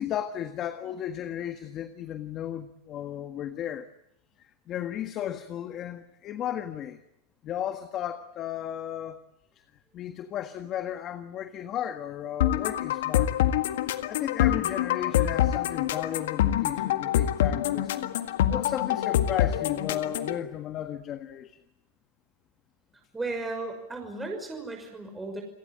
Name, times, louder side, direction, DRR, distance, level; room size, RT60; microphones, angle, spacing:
voice 1, 0.0-3.9 4.7-7.0 7.4-9.2 9.5-9.6 9.9-13.3 13.9-18.1 18.5-21.6, left 10 dB, 35° left, 9 dB, 1.6 m, -34 dB
sound 1, 12.4-20.4, left 12 dB, 80° left, 1.8 m, -26 dB
voice 2, 22.9-25.4, right 3 dB, 10° right, 3 dB, 5.9 m, -35 dB
29.0 x 18.5 x 9.2 m, 0.82 s
supercardioid pair, 130°, 0 cm